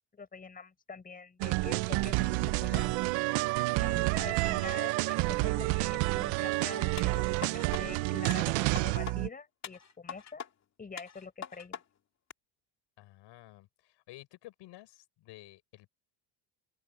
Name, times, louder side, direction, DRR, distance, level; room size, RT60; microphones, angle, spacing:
voice 1, 0.1-2.9 3.8-10.4 10.8-11.8, left 5 dB, 20° left, 6.5 m, -45 dB
sound 1, 1.4-9.3, right 22 dB, 85° right, 0.7 m, -29 dB
sound 2, 7.0-7.8 8.3-9.2 9.6-10.5 11.0-11.8 12.3-12.4, left 8 dB, 35° left, 2.3 m, -43 dB
voice 2, 13.0-15.9, left 17 dB, 70° left, 6.7 m, -52 dB
open air
cardioid pair, 155°, 45 cm